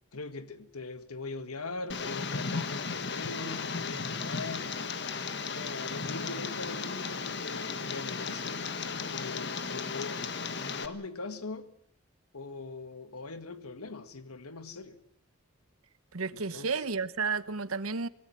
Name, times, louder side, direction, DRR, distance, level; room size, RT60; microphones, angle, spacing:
voice 1, 0.1-4.9 5.5-8.6 9.1-10.3 10.8-11.7 12.3-15.0 16.3-16.8, left 3 dB, 90° left, 1.8 m, -41 dB
Tick, 1.9-10.9, left 5 dB, 50° left, 1.5 m, -35 dB
voice 2, 16.1-18.1, right 4 dB, 75° right, 1.0 m, -32 dB
25.0 x 18.5 x 7.6 m
head